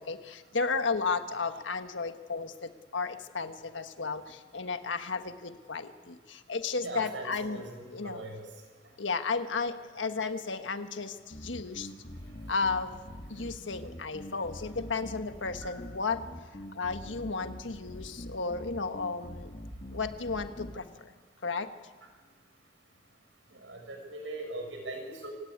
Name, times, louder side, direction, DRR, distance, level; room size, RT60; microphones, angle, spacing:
voice 1, 0.0-7.6 7.9-8.2 9.0-11.9 12.5-13.0 13.3-16.2 16.7-19.5 19.9-21.1 21.4-21.7, left 4 dB, 85° left, 8 dB, 1.5 m, -33 dB
voice 2, 6.8-8.4 15.6-15.7 23.6-25.3, right 2 dB, 85° right, 3 dB, 6.5 m, -40 dB
sound 1, 11.3-20.8, left 1 dB, 40° left, 1.6 m, -44 dB
27.0 x 17.5 x 8.9 m, 1.5 s
head